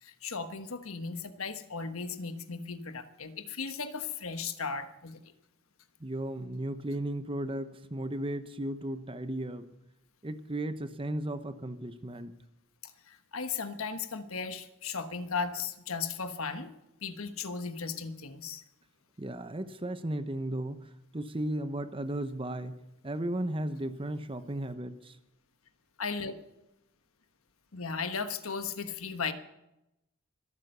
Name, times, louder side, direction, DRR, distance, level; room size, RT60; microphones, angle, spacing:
voice 1, 0.0-5.2 12.8-16.7 17.0-18.6 26.0-26.3 27.7-29.3, left 5 dB, 75° left, 9 dB, 1.3 m, -36 dB
voice 2, 6.0-9.7 10.2-12.3 19.2-25.2, right 1 dB, 25° right, 10 dB, 0.9 m, -35 dB
23.5 x 8.8 x 6.8 m, 0.90 s
head